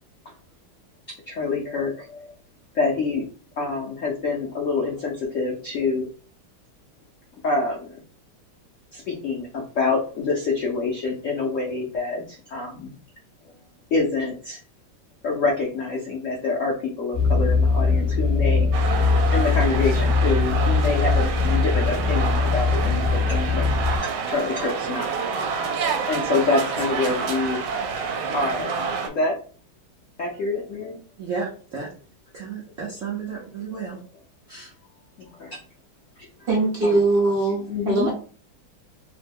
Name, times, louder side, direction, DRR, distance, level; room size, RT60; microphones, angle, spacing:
voice 1, 1.3-2.3 2.7-3.2 3.6-6.1 7.4-7.9 8.9-12.9 13.9-14.6 15.2-18.7 19.3-23.7 24.0-25.1 25.4-25.5 26.1-27.6 28.3-28.7 29.2-29.4 30.2-31.0 33.7-33.8 35.2-35.6 36.8-37.0 37.7-38.1, left 3 dB, 85° left, -2 dB, 0.6 m, -26 dB
sound 1, 17.1-24.0, left 4 dB, 15° left, 1.0 m, -21 dB
sound 2, 18.7-29.1, right 5 dB, 80° right, 1.4 m, -28 dB
voice 2, 31.2-31.9 32.3-34.0 34.5-34.7, right 5 dB, 65° right, -4 dB, 0.8 m, -32 dB
voice 3, 36.5-38.1, right 2 dB, 35° right, -4 dB, 1.0 m, -21 dB
3.3 x 2.1 x 3.3 m, 0.40 s
omnidirectional pair, 2.2 m